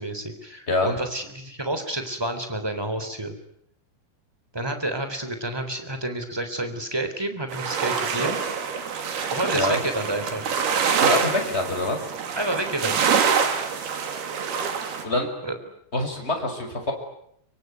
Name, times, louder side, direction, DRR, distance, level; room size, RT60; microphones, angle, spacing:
voice 1, 0.0-3.3 4.5-8.4 9.3-10.5 12.3-13.0 15.4-15.6, right 1 dB, 5° right, 8 dB, 2.8 m, -29 dB
sound 1, 7.5-15.0, right 6 dB, 60° right, 4.5 m, -25 dB
voice 2, 11.0-12.0 15.0-15.3 15.9-16.9, left 2 dB, 15° left, 3 dB, 5.7 m, -25 dB
26.0 x 23.5 x 9.5 m, 0.73 s
omnidirectional pair, 5.1 m